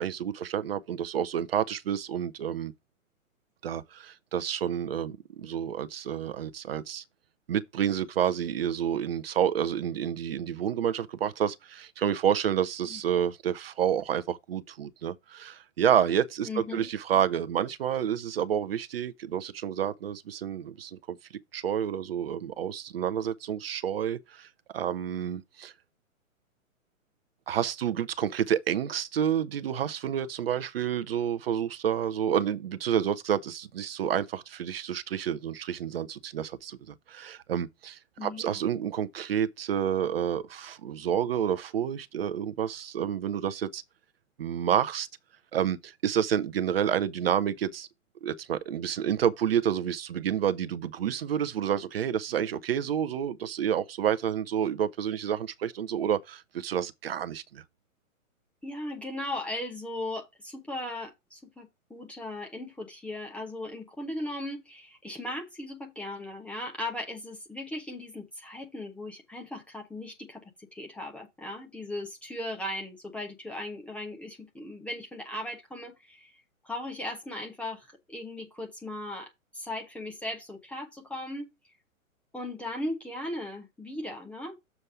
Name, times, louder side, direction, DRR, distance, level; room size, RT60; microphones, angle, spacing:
voice 1, 0.0-2.7 3.6-7.0 7.5-21.2 21.5-24.5 24.7-25.7 27.5-43.8 44.4-45.1 45.5-47.9 48.2-57.6, right 9 dB, 45° right, 0.7 m, -29 dB
voice 2, 16.4-16.9 38.2-38.6 58.6-76.4 76.6-81.5 82.3-84.6, left 1 dB, 5° left, 0.6 m, -37 dB
7.0 x 5.3 x 4.8 m
figure-of-eight pair, 120°, 42 cm